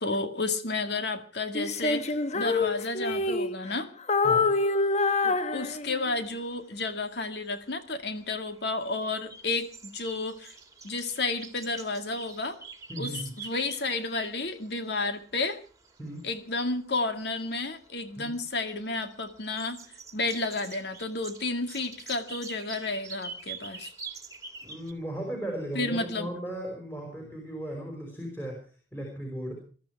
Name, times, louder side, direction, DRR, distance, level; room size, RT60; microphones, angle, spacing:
voice 1, 0.0-3.9 5.2-10.6 10.8-12.6 13.0-15.6 16.2-19.8 20.1-23.9 25.7-26.3, left 3 dB, 65° left, 7 dB, 2.1 m, -32 dB
Female singing, 1.5-3.8 4.1-6.2, left 3 dB, 40° left, 0.9 m, -26 dB
sound 1, 5.5-24.9, right 4 dB, 20° right, 2.1 m, -46 dB
voice 2, 12.9-13.3 16.0-16.2 18.2-18.3 24.6-28.6 28.9-29.6, right 1 dB, 10° left, 1 dB, 5.1 m, -36 dB
22.0 x 13.0 x 4.7 m, 0.41 s
head